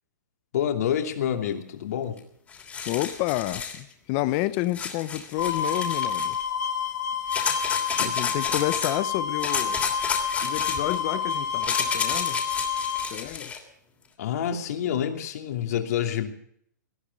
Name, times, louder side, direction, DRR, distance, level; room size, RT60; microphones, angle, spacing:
voice 1, 0.5-2.2 14.2-16.3, left 9 dB, 55° left, 2.8 m, -27 dB
sound 1, 2.2-2.3 2.5-3.8 4.7-6.4 7.3-8.9 9.4-13.6, left 6 dB, 15° left, 3.1 m, -31 dB
voice 2, 2.9-6.4 8.0-9.8 10.4-12.4 13.1-13.5, left 16 dB, 30° left, 0.8 m, -29 dB
sound 2, 5.4-13.1, left 7 dB, 75° left, 6.1 m, -29 dB
19.0 x 13.5 x 5.3 m
hypercardioid pair, 150°, 10 cm